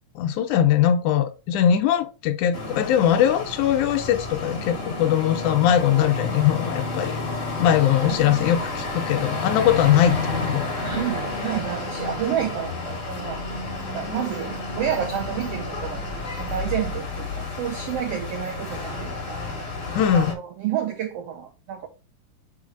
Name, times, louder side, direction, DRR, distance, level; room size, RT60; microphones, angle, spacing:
voice 1, 0.2-7.2 7.6-10.6 20.0-20.4, left 10 dB, 75° left, 2.0 m, -21 dB
sound 1, 2.5-20.3, left 3 dB, 30° left, 1.5 m, -30 dB
voice 2, 10.8-13.4 13.9-16.1 16.4-19.5 20.1-21.9, right 10 dB, 85° right, 1.4 m, -30 dB
4.6 x 4.1 x 5.1 m
omnidirectional pair, 3.8 m